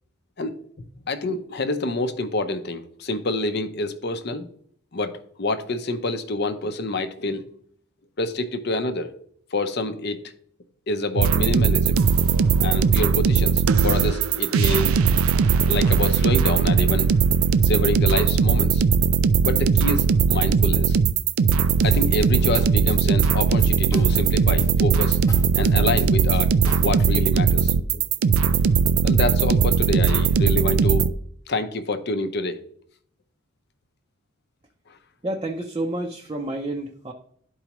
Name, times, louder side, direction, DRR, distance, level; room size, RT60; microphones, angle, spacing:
voice 1, 0.4-4.5 4.9-7.4 8.2-9.1 9.5-10.2 10.9-12.0 12.6-15.0 15.7-17.1 17.6-18.8 19.4-21.0 21.8-25.2 25.6-26.5 26.8-28.0 29.0-31.1 31.5-32.6, left 2 dB, 50° left, 9 dB, 0.6 m, -27 dB
sound 1, 11.2-31.1, right 6 dB, 85° right, 0.4 m, -19 dB
sound 2, 21.8-27.3, left 1 dB, 15° left, 0.7 m, -39 dB
voice 2, 35.2-37.1, right 1 dB, 20° right, 1 dB, 0.5 m, -29 dB
11.5 x 4.6 x 3.0 m, 0.63 s
head